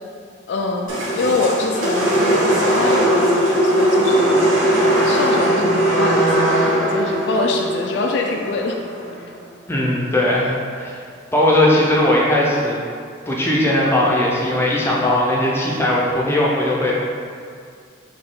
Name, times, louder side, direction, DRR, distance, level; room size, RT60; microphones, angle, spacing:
voice 1, 0.5-4.5 5.0-8.8 9.1-9.3, left 3 dB, 65° left, 1 dB, 0.3 m, -24 dB
sound 1, 0.9-9.1, right 1 dB, 85° right, 1.2 m, -19 dB
voice 2, 9.7-11.0 11.3-12.8 13.3-16.9, left 1 dB, 10° left, -4 dB, 0.5 m, -18 dB
4.2 x 2.7 x 3.8 m, 2.2 s
head